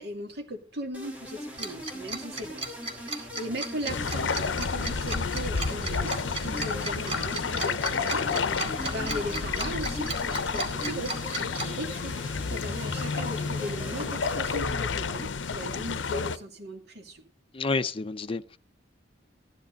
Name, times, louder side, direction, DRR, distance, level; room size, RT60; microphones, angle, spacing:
voice 1, 0.0-17.2, equal, 60° right, 2.4 m, -38 dB
sound 1, 0.9-14.6, left 1 dB, 10° right, 3.3 m, -41 dB
Tick-tock, 1.6-11.6, right 3 dB, 35° right, 2.2 m, -35 dB
sound 2, 3.9-16.4, left 5 dB, 80° left, 0.7 m, -30 dB
voice 2, 17.5-18.6, left 3 dB, 30° left, 0.6 m, -29 dB
14.0 x 11.0 x 3.9 m
head